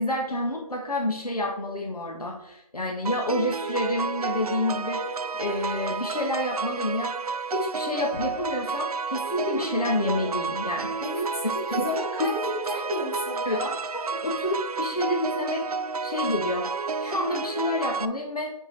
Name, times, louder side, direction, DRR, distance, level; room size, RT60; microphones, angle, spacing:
voice 1, 0.0-5.0 5.3-7.1 7.5-11.0 11.7-11.9 13.4-13.6 14.2-15.6 16.0-16.7 17.0-18.5, left 1 dB, 80° left, 0 dB, 1.6 m, -28 dB
sound 1, 3.0-18.0, right 4 dB, 75° right, 0.4 m, -31 dB
Knock, 8.1-8.8, left 1 dB, 25° left, 2.3 m, -43 dB
voice 2, 11.0-13.8, left 1 dB, 40° left, -3 dB, 2.5 m, -31 dB
6.6 x 5.3 x 4.5 m, 0.84 s
figure-of-eight pair, 160°, 19 cm